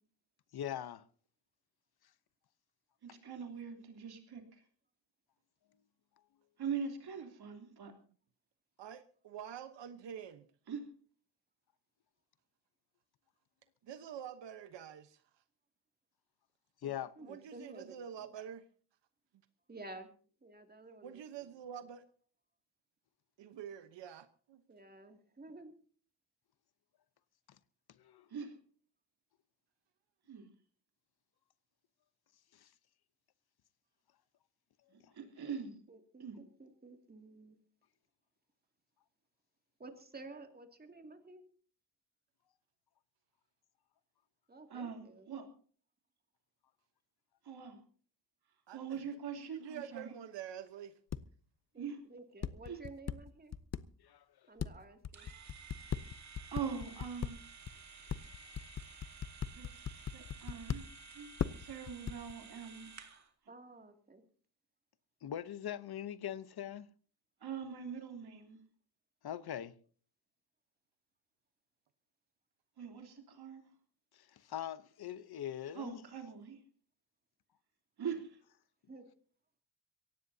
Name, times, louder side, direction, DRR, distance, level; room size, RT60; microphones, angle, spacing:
voice 1, 0.5-1.1 16.8-17.2 28.0-28.3 32.5-32.7 35.0-35.1 54.0-54.2 65.2-66.9 69.2-69.7 74.1-76.0, left 10 dB, 60° left, 0.9 m, -42 dB
voice 2, 3.0-4.4 6.6-7.9 10.7-10.9 28.3-28.5 30.3-30.5 34.9-35.7 36.2-36.4 44.7-45.5 47.4-47.8 48.7-50.1 51.8-52.0 52.7-52.8 56.5-57.4 59.5-60.9 61.1-62.9 67.4-68.6 72.8-73.6 75.7-76.6 78.0-78.4, right 6 dB, 60° right, 3.3 m, -42 dB
voice 3, 8.8-10.5 13.8-15.2 17.2-18.6 21.0-22.0 23.4-24.6 48.7-49.0 49.4-50.9, right 9 dB, 75° right, 1.1 m, -47 dB
voice 4, 16.8-18.3 19.7-20.1 20.4-21.5 24.7-25.7 35.9-37.6 39.8-41.4 44.5-45.3 51.7-53.5 54.5-55.3 63.5-64.2 78.9-79.0, right 2 dB, 20° right, 2.5 m, -52 dB
sound 1, 51.1-51.2 52.4-53.8 54.6-57.3 57.7-57.8 58.1-60.8 61.4-62.3, left 8 dB, 35° left, 0.6 m, -36 dB
sound 2, 55.1-63.3, right 5 dB, 40° right, 2.4 m, -54 dB
23.0 x 17.5 x 2.8 m
wide cardioid pair, 145°, 43 cm